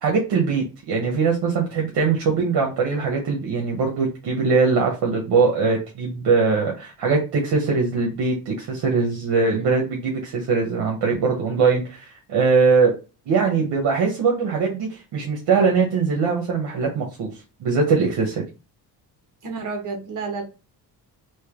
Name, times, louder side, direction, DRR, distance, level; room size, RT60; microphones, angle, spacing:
voice 1, 0.0-12.9 13.3-17.3 17.6-18.4, right 4 dB, 75° right, 0 dB, 1.1 m, -21 dB
voice 2, 19.4-20.4, right 4 dB, 50° right, 4 dB, 1.3 m, -30 dB
3.3 x 2.5 x 3.7 m, 0.31 s
cardioid pair, 145°, 40 cm